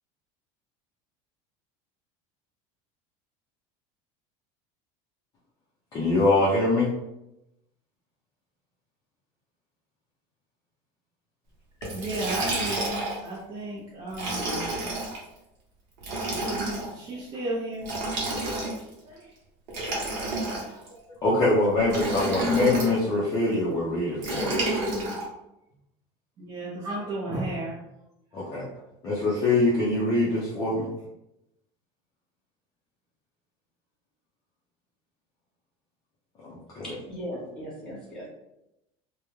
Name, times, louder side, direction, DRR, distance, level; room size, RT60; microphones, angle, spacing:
voice 1, 5.9-6.9 21.2-24.8 28.3-28.6 29.0-30.9 36.4-37.0, left 2 dB, 25° left, -7 dB, 0.5 m, -24 dB
Liquid, 11.8-13.3 14.1-15.2 16.0-16.9 17.8-18.9 19.7-20.9 21.9-22.9 24.2-25.2, right 2 dB, 55° right, 0.9 m, -30 dB
voice 2, 11.9-14.9 16.3-17.9 19.0-19.3 20.4-21.0 26.4-27.8 28.3-28.4, right 1 dB, 25° right, -8 dB, 0.6 m, -34 dB
voice 3, 37.1-38.3, equal, 5° left, -6 dB, 0.9 m, -37 dB
2.3 x 2.1 x 3.0 m, 0.90 s
cardioid pair, 165°, 15 cm